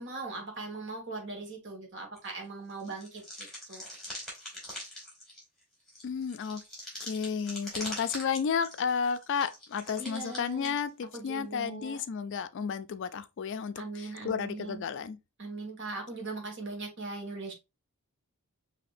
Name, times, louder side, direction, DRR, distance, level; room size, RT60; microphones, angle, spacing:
voice 1, 0.0-3.9 10.0-10.7 11.1-12.0 13.8-14.8 15.4-17.5, right 3 dB, 55° right, 1.4 m, -40 dB
sound 1, 2.2-2.4 2.7-10.9 11.6-11.7, left 1 dB, ahead, 2.4 m, -43 dB
voice 2, 6.0-6.6 7.0-15.2, left 6 dB, 55° left, 0.4 m, -32 dB
5.9 x 2.8 x 2.5 m
head